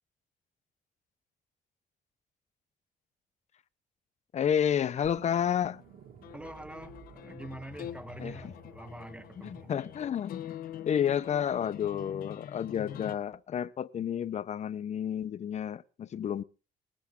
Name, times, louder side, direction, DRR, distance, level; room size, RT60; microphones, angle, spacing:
voice 1, 4.3-5.8 8.2-8.3 9.4-10.6 10.9-16.4, left 9 dB, 50° left, 0.8 m, -30 dB
sound 1, 5.0-10.0, right 2 dB, 75° right, 2.6 m, -53 dB
sound 2, 5.7-13.2, left 11 dB, 75° left, 1.0 m, -45 dB
voice 2, 6.3-9.7, right 1 dB, 5° right, 1.2 m, -45 dB
19.5 x 14.5 x 3.7 m
cardioid pair, 105°, 15 cm